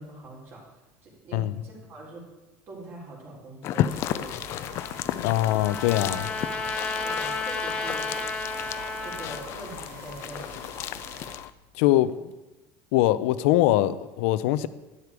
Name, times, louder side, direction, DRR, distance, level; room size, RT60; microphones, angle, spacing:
voice 1, 0.0-2.2 2.7-4.7 7.0-8.1 9.0-10.6, right 2 dB, 35° right, -3 dB, 3.8 m, -43 dB
sound 1, 3.6-11.5, left 12 dB, 40° left, 0.4 m, -33 dB
sound 2, 3.9-11.4, right 6 dB, 80° right, 1.8 m, -47 dB
Trumpet, 4.8-9.5, left 3 dB, 15° left, 0.9 m, -32 dB
voice 2, 5.1-6.3 11.8-12.3 12.9-14.7, left 14 dB, 85° left, 13 dB, 0.6 m, -23 dB
12.0 x 11.0 x 4.8 m, 1.1 s
cardioid pair, 175°, 7 cm